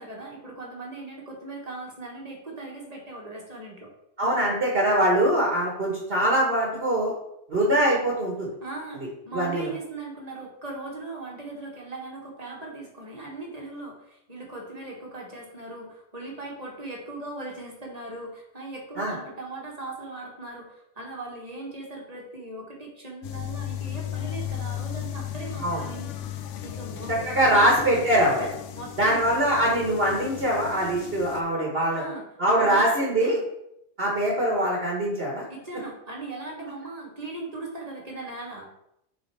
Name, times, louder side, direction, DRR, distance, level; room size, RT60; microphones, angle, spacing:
voice 1, 0.0-3.9 8.6-26.1 26.6-27.1 27.4-28.1 28.7-29.2 31.9-32.2 32.5-33.4 35.5-38.7, right 2 dB, 30° right, -2 dB, 1.4 m, -39 dB
voice 2, 4.2-7.1 7.5-8.5 9.3-9.7 19.0-19.1 25.6-25.8 27.2-28.5 29.0-32.0 32.4-33.4 34.0-35.4, right 1 dB, 50° right, -2 dB, 1.5 m, -23 dB
sound 1, 23.2-31.4, left 11 dB, 75° left, 0.9 m, -35 dB
6.3 x 3.8 x 4.6 m, 0.79 s
omnidirectional pair, 1.3 m